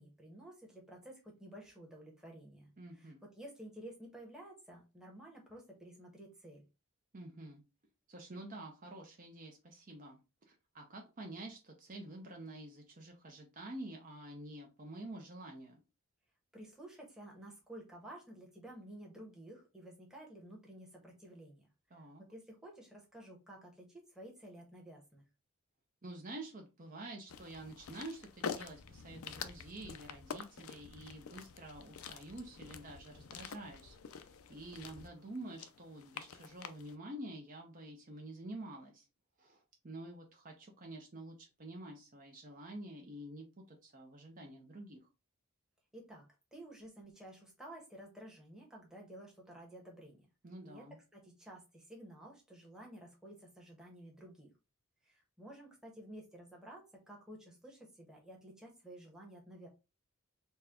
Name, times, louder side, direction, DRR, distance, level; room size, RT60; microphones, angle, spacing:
voice 1, 0.0-6.6 16.5-21.7 22.3-25.2 45.9-46.2 46.5-50.3 50.6-50.8 51.1-54.5 55.0-59.7, right 1 dB, 5° right, -2 dB, 1.0 m, -52 dB
voice 2, 2.8-3.3 7.1-7.6 8.1-10.2 10.5-15.8 21.9-22.2 26.0-39.1 39.4-45.0 50.4-51.0, right 1 dB, 40° right, 1 dB, 0.6 m, -48 dB
sound 1, 27.3-36.9, left 6 dB, 75° left, 0.4 m, -47 dB
4.1 x 2.2 x 3.5 m, 0.28 s
head